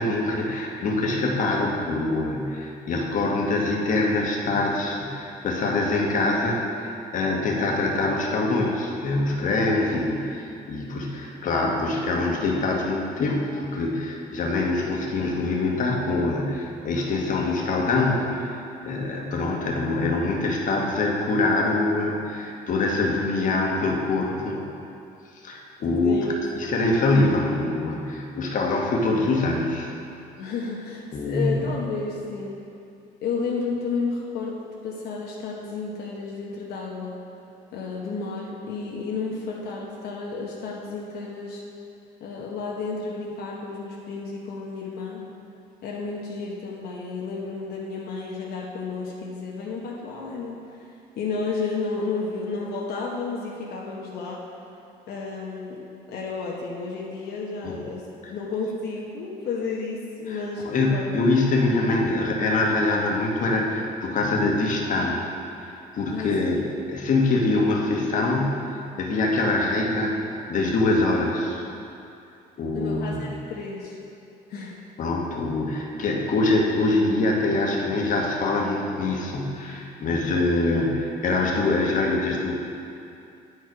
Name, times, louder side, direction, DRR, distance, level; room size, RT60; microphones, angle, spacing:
voice 1, 0.0-18.5 18.8-24.6 25.4-26.2 26.6-29.9 31.1-31.6 57.6-57.8 60.3-60.4 60.6-65.2 65.6-66.6 66.9-70.2 70.5-71.6 72.6-73.3 75.0-82.5, left 2 dB, 50° left, -1 dB, 1.2 m, -24 dB
voice 2, 26.0-26.4 30.4-32.6 33.2-34.5 34.8-37.1 37.7-41.6 42.2-45.2 45.8-50.9 51.1-54.4 55.1-55.8 56.1-61.2 66.1-66.7 72.7-74.0 74.5-74.8, left 4 dB, 75° left, -3 dB, 1.0 m, -32 dB
9.2 x 4.9 x 4.6 m, 2.6 s
cardioid pair, 110°, 17 cm